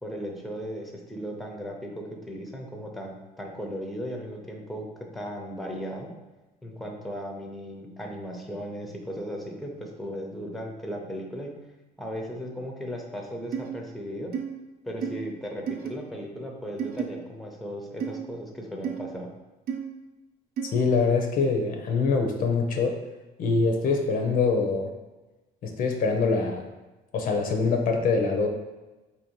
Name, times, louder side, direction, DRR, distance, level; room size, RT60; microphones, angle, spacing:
voice 1, 0.0-4.9 5.1-6.1 6.6-11.5 12.0-14.3 14.8-19.3, equal, ahead, 0 dB, 0.5 m, -36 dB
sound 1, 13.5-13.7 14.3-14.4 15.0-15.1 15.7-15.9 16.8-17.0 18.0-18.2 18.8-19.0 19.7-19.8 20.6-20.7, right 7 dB, 65° right, 0.5 m, -30 dB
voice 2, 20.7-22.9 23.4-24.9 25.6-26.6 27.1-28.5, left 4 dB, 55° left, 3 dB, 0.5 m, -24 dB
4.2 x 2.6 x 2.9 m, 1.1 s
cardioid pair, 110°, 17 cm